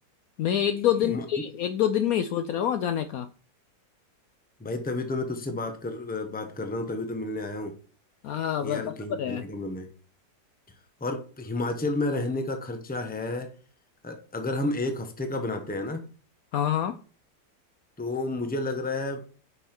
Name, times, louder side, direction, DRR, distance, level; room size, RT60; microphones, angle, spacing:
voice 1, 0.4-3.3 8.2-8.9 9.2-9.4 16.5-17.0, left 10 dB, 70° left, 0.9 m, -26 dB
voice 2, 4.6-7.8 8.6-9.9 11.0-13.5 14.0-16.0 18.0-19.2, left 2 dB, 5° left, 0.8 m, -31 dB
8.1 x 5.6 x 4.5 m
omnidirectional pair, 1.9 m